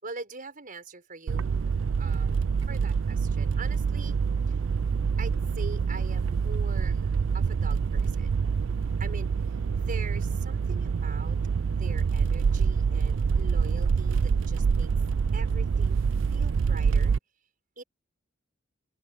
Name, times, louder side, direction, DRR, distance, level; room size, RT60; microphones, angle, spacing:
voice 1, 0.0-1.6 2.0-4.2 4.5-4.6 5.2-8.4 9.0-9.3 9.7-11.4 11.6-14.9 15.3-16.0 16.3-17.2 17.8-17.9, right 3 dB, 45° right, 5.7 m, -43 dB
sound 1, 1.3-17.2, right 5 dB, 80° right, 0.4 m, -26 dB
open air
head